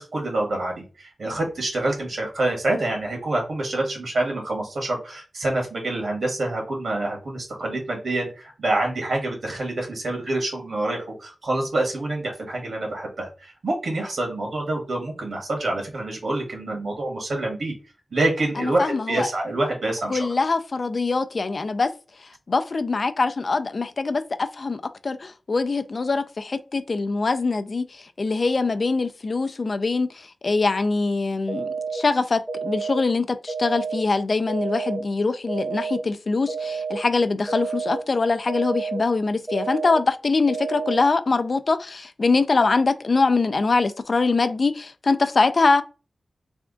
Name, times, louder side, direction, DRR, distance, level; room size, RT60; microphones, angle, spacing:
voice 1, 0.0-17.7 18.1-20.3, right 2 dB, 75° right, 1.7 m, -27 dB
voice 2, 18.6-19.3 20.1-21.9 22.5-45.8, left 3 dB, 50° left, 0.4 m, -23 dB
sound 1, 31.5-32.0 32.5-33.0 33.5-34.0 34.5-35.0 35.5-36.0 36.5-37.0 37.5-38.0 38.5-39.0 39.5-40.0 40.5-41.0, right 5 dB, 20° right, 0.6 m, -29 dB
3.4 x 2.4 x 3.7 m
wide cardioid pair, 105°, 0 cm